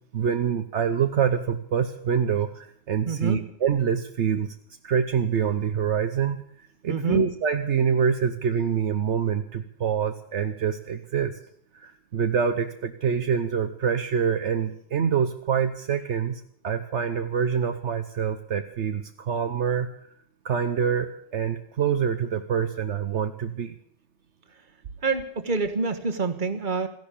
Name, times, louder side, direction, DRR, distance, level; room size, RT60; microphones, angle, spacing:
voice 1, 0.1-4.5 4.8-6.4 6.8-11.3 11.7-19.9 20.4-23.8, right 7 dB, 70° right, 7 dB, 1.2 m, -25 dB
voice 2, 3.0-3.4 6.9-7.2 25.0-26.9, right 4 dB, 40° right, 7 dB, 1.6 m, -27 dB
15.0 x 11.0 x 8.4 m, 0.63 s
omnidirectional pair, 1.2 m